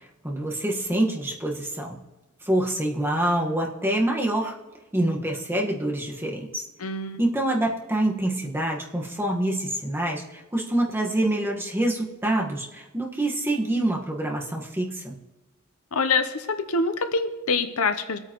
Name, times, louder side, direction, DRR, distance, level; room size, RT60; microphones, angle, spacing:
voice 1, 0.0-2.0 2.4-4.5 4.9-6.6 7.2-15.2, right 1 dB, 10° right, -1 dB, 1.5 m, -26 dB
voice 2, 6.8-7.2 15.9-18.2, left 3 dB, 70° left, 9 dB, 0.8 m, -25 dB
23.0 x 8.9 x 3.1 m, 1.1 s
head